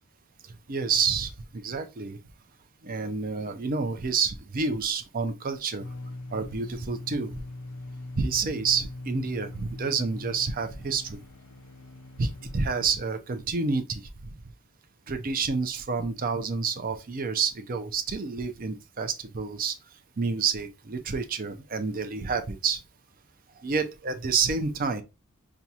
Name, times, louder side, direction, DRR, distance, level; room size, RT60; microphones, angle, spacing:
voice 1, 0.7-2.2 2.8-5.9 6.3-7.3 8.2-11.2 12.2-14.3 15.1-19.8 20.2-22.8 23.6-25.0, right 5 dB, 40° right, 0.5 m, -29 dB
sound 1, 5.8-12.9, left 2 dB, 80° left, 0.4 m, -41 dB
5.9 x 2.3 x 2.7 m
head